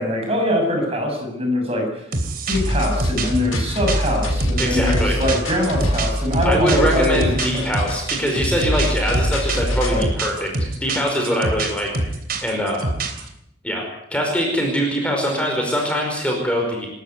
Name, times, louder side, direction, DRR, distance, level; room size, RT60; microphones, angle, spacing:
voice 1, 0.0-2.0 2.5-7.6 9.9-10.0, left 1 dB, 30° right, 2 dB, 7.4 m, -23 dB
sound 1, 2.1-13.3, right 2 dB, 45° right, 3.2 m, -26 dB
sound 2, 2.5-10.0, equal, 90° left, 7.3 m, -24 dB
voice 2, 4.6-5.2 6.4-10.5 10.8-11.9 12.4-12.8 13.6-16.9, equal, 5° left, 0 dB, 4.9 m, -22 dB
28.0 x 13.5 x 9.6 m, 0.80 s
head